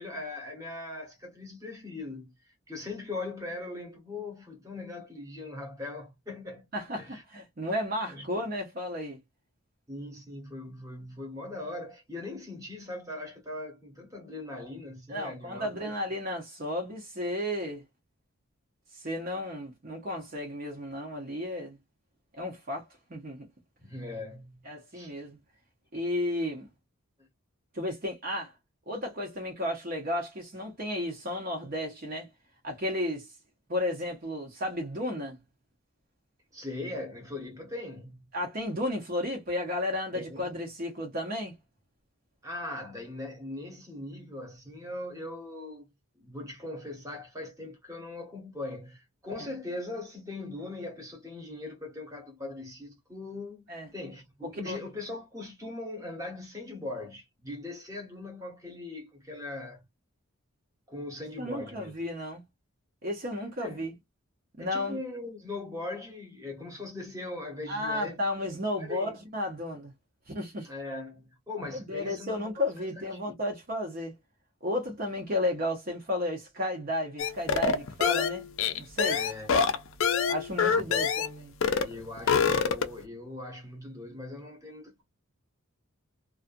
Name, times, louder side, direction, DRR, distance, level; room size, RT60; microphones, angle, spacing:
voice 1, 0.0-6.7 7.0-7.2 8.1-8.3 9.9-15.9 23.8-24.6 24.9-25.1 36.5-38.3 40.1-40.5 42.4-45.9 46.2-53.6 53.9-59.8 60.9-61.9 63.6-63.8 64.6-68.5 68.8-69.2 70.6-72.7 72.9-73.4 79.1-79.8 80.7-81.0 81.8-85.0, left 2 dB, 15° right, 1.1 m, -40 dB
voice 2, 6.7-9.2 15.1-17.8 18.9-21.8 22.4-23.5 24.6-25.4 25.9-26.7 27.7-28.5 28.9-32.3 32.6-33.3 33.7-35.4 38.3-41.5 53.7-53.9 54.6-54.8 61.4-62.4 63.0-63.9 64.6-65.0 67.7-69.9 70.3-70.7 71.7-74.1 74.6-78.4 78.7-79.2 80.3-81.5, left 1 dB, 40° right, 0.8 m, -33 dB
sound 1, 77.2-81.3 81.6-81.9 82.2-83.0, left 6 dB, 65° left, 0.5 m, -26 dB
2.5 x 2.4 x 2.5 m
head